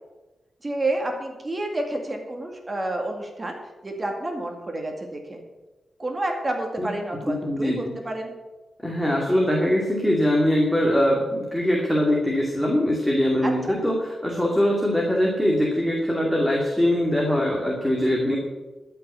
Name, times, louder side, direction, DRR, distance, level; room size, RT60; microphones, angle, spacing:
voice 1, 0.6-3.6 3.8-5.4 6.0-8.3 13.4-13.8, right 1 dB, 30° right, 3 dB, 2.1 m, -29 dB
voice 2, 7.3-7.9 8.8-18.4, left 1 dB, 5° left, -2 dB, 2.4 m, -22 dB
13.0 x 5.9 x 8.1 m, 1.1 s
wide cardioid pair, 90°, 0 cm